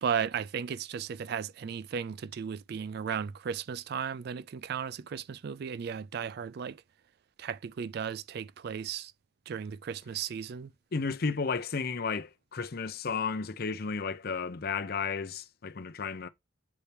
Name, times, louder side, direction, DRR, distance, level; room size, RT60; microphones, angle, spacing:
voice 1, 0.0-6.8 7.4-9.1 9.5-10.7, right 7 dB, 55° right, 0.3 m, -35 dB
voice 2, 10.9-16.3, left 5 dB, 50° left, 0.6 m, -33 dB
8.1 x 4.3 x 3.4 m
head